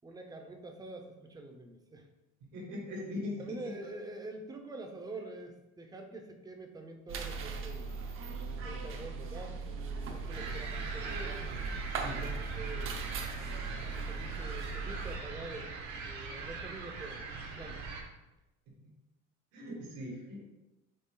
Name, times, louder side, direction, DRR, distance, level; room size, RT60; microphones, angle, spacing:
voice 1, 0.0-2.1 3.4-8.0 8.6-11.6 12.2-13.1 13.9-15.8 16.0-17.8, right 2 dB, 15° right, 4 dB, 0.6 m, -46 dB
voice 2, 2.4-3.9 12.0-12.2 18.7-18.8 19.5-20.4, left 1 dB, 90° right, -4 dB, 2.1 m, -41 dB
sound 1, 7.1-15.2, right 4 dB, 45° right, 0.8 m, -39 dB
sound 2, 10.3-18.0, right 4 dB, 70° right, 1.3 m, -41 dB
6.6 x 3.7 x 3.8 m, 1.0 s
cardioid pair, 150°, 29 cm